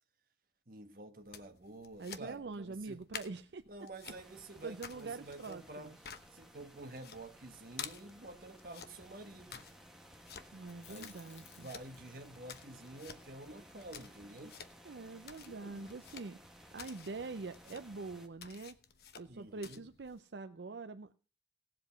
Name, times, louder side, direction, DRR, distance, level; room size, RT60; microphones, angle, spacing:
voice 1, 0.7-3.0 3.7-5.9 6.3-9.7 10.9-14.6 19.3-19.8, right 2 dB, 50° right, 1.5 m, -50 dB
sound 1, 1.2-20.2, left 7 dB, 60° left, 1.0 m, -53 dB
voice 2, 2.0-3.6 4.6-6.0 10.5-11.7 14.8-16.4 16.7-18.8 19.2-21.1, right 3 dB, 75° right, 0.6 m, -44 dB
sound 2, 4.0-18.3, equal, ahead, 1.3 m, -58 dB
Chewing mastication, 10.6-14.8 15.0-15.1 15.5-16.2, left 4 dB, 80° left, 2.3 m, -61 dB
17.5 x 7.8 x 5.7 m
head